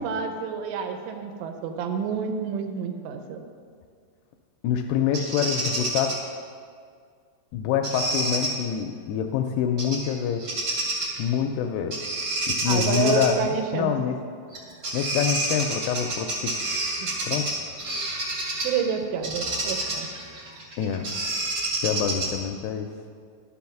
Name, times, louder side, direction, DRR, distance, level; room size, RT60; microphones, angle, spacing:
voice 1, 0.0-3.4 12.7-13.9 17.0-17.1 18.6-20.1, right 6 dB, 85° right, 6 dB, 3.0 m, -29 dB
voice 2, 4.6-6.2 7.5-10.5 11.2-12.0 12.5-14.2 14.9-16.5 17.2-17.5 20.8-21.1 21.8-22.9, left 8 dB, 85° left, 5 dB, 2.3 m, -26 dB
Bird vocalization bird call bird song, 5.1-6.2 7.8-8.5 9.8-10.1 10.4-11.2 11.9-13.3 14.5-14.6 14.8-18.8 19.2-22.5, right 2 dB, 60° right, 1.4 m, -28 dB
11.5 x 6.2 x 5.9 m, 2.2 s
omnidirectional pair, 5.0 m